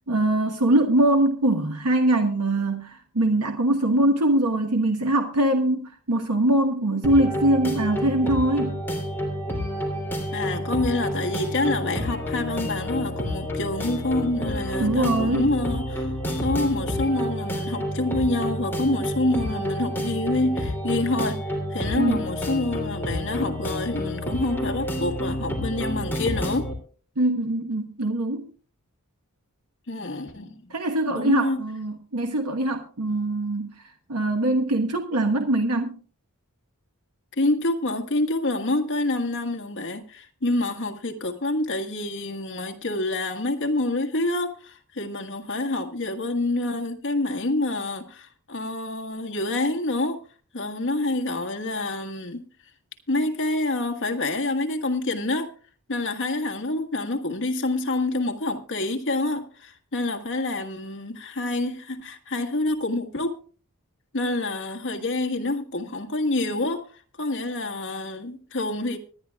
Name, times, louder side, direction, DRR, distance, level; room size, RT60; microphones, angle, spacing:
voice 1, 0.1-8.8 14.8-15.5 22.0-22.2 27.2-28.5 30.7-33.7 34.1-36.0, right 1 dB, 90° right, 1.2 m, -22 dB
sound 1, 7.0-26.7, equal, 10° left, 2.9 m, -29 dB
voice 2, 10.3-21.4 21.7-26.7 29.9-30.7 31.1-31.6 37.4-50.2 50.5-52.4 53.1-55.5 55.9-63.4 64.1-69.0, left 2 dB, 55° left, 1.6 m, -27 dB
25.5 x 10.5 x 2.3 m
head